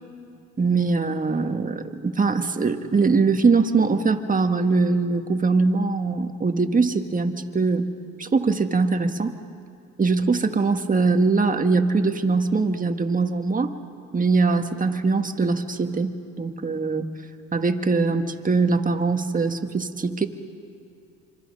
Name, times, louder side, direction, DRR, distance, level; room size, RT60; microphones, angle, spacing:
voice 1, 0.6-7.9 8.2-9.3 10.0-13.7 14.1-17.1 17.5-20.3, right 4 dB, 25° right, 6 dB, 1.5 m, -22 dB
26.5 x 26.0 x 5.4 m, 2.5 s
cardioid pair, 90°, 30 cm